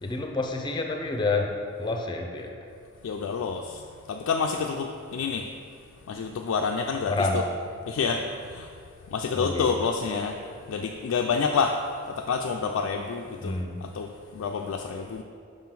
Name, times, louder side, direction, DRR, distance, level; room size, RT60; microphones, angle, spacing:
voice 1, 0.0-2.5 7.1-7.4 9.3-9.8 13.4-13.8, left 3 dB, 20° left, 3 dB, 0.5 m, -28 dB
voice 2, 3.0-5.5 6.1-7.1 7.9-8.7 9.1-10.4 10.7-13.5 13.8-15.2, left 5 dB, 85° left, 2 dB, 0.3 m, -28 dB
5.2 x 3.7 x 5.8 m, 2.3 s
head